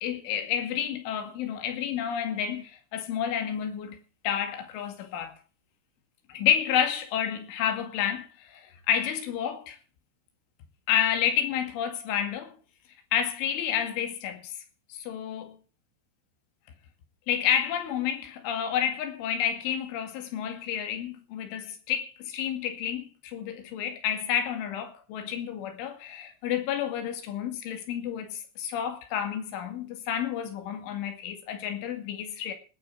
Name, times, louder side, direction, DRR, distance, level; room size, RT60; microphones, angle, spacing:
voice 1, 0.0-4.0 4.2-5.4 6.3-9.8 10.9-12.6 13.1-14.5 14.9-15.6 17.3-32.5, left 9 dB, 80° left, 4.6 m, -30 dB
18.0 x 7.9 x 7.4 m
omnidirectional pair, 5.6 m